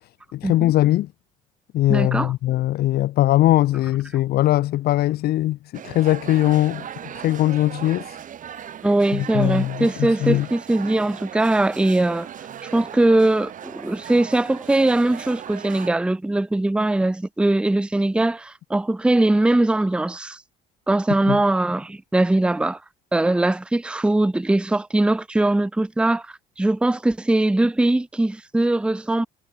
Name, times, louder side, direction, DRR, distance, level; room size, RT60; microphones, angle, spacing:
voice 1, 0.3-1.1 1.7-6.8 7.1-8.2 9.1-10.5 21.3-21.4, left 15 dB, 70° left, 1.0 m, -20 dB
voice 2, 1.9-2.3 8.8-12.3 12.6-20.4 20.9-22.8 23.1-29.3, right 2 dB, 5° right, 0.6 m, -21 dB
sound 1, 5.7-15.9, right 9 dB, 50° right, 3.5 m, -38 dB
cardioid pair, 110°, 17 cm